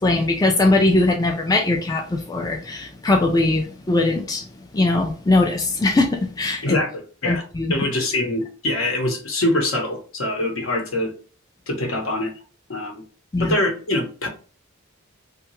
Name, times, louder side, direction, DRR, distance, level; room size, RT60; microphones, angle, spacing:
voice 1, 0.0-4.4 4.7-6.8 7.3-7.8 13.3-13.5, left 2 dB, 20° left, 0.3 m, -20 dB
voice 2, 6.6-7.4 7.7-11.1 11.7-12.3 12.7-13.0 13.4-14.3, left 1 dB, 70° left, 0.9 m, -24 dB
2.7 x 2.3 x 3.0 m
head